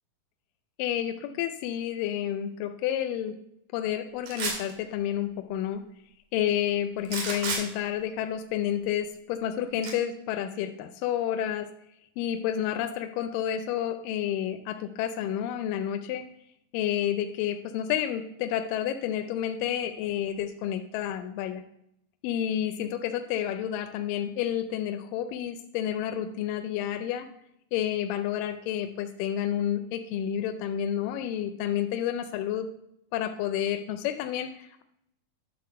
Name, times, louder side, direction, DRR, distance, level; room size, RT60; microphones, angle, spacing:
voice 1, 0.8-3.3 3.7-5.8 6.3-11.7 12.2-16.2 16.7-21.6 22.2-27.3 27.7-32.7 33.1-34.8, left 10 dB, 80° left, 8 dB, 2.2 m, -30 dB
sound 1, 4.3-4.7 7.1-7.6 9.8-9.9, right 3 dB, 75° right, 3.8 m, -30 dB
11.0 x 4.2 x 6.7 m, 0.77 s
omnidirectional pair, 4.1 m